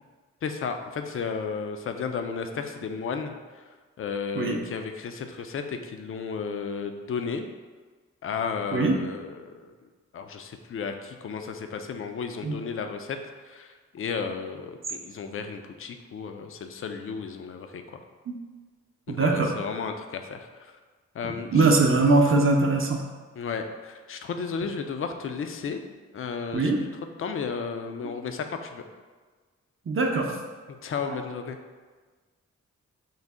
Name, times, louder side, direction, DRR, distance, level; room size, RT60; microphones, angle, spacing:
voice 1, 0.4-3.6 4.0-7.4 8.2-9.7 10.1-13.2 13.4-18.0 19.1-20.5 21.1-21.7 23.4-25.8 26.1-26.7 27.2-28.8 30.8-31.6, left 5 dB, 45° left, 6 dB, 0.4 m, -33 dB
voice 2, 19.1-19.5 21.2-23.0 26.5-26.8 29.9-30.3 31.1-31.2, right 3 dB, 40° right, 1 dB, 0.6 m, -22 dB
3.9 x 2.0 x 3.5 m, 1.4 s
supercardioid pair, 40°, 32 cm